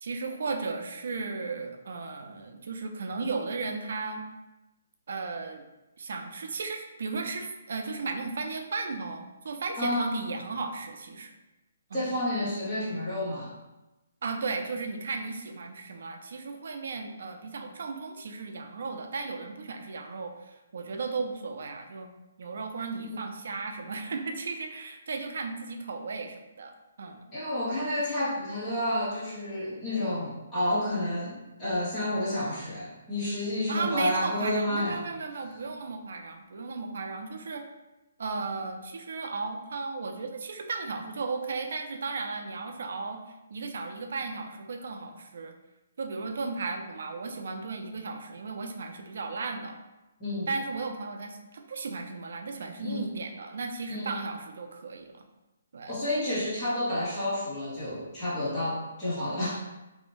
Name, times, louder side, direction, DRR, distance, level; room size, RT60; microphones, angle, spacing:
voice 1, 0.0-4.2 5.1-5.6 6.0-11.3 11.9-12.0 14.2-22.1 22.4-27.3 33.7-37.6 38.2-43.2 43.5-45.5 46.0-49.8 50.5-55.2 55.7-55.9, right 4 dB, 55° right, 5 dB, 0.3 m, -35 dB
voice 2, 9.8-10.1 11.9-13.5 27.3-35.0 50.2-50.5 52.8-53.1 53.9-54.1 55.9-59.6, left 1 dB, 10° left, -12 dB, 0.7 m, -30 dB
2.5 x 2.0 x 2.9 m, 1.0 s
hypercardioid pair, 175°, 0 cm